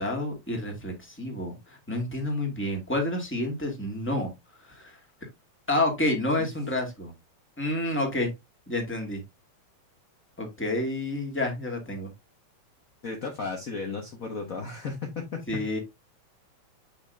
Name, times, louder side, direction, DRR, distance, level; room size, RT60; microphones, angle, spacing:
voice 1, 0.0-4.3 4.6-5.0 5.7-7.1 7.6-8.3 8.7-9.2 10.4-12.1 15.5-15.8, left 1 dB, 5° left, 1 dB, 1.8 m, -29 dB
voice 2, 13.0-15.6, left 4 dB, 50° left, 1 dB, 1.0 m, -34 dB
8.5 x 5.9 x 2.7 m, 0.20 s
omnidirectional pair, 3.3 m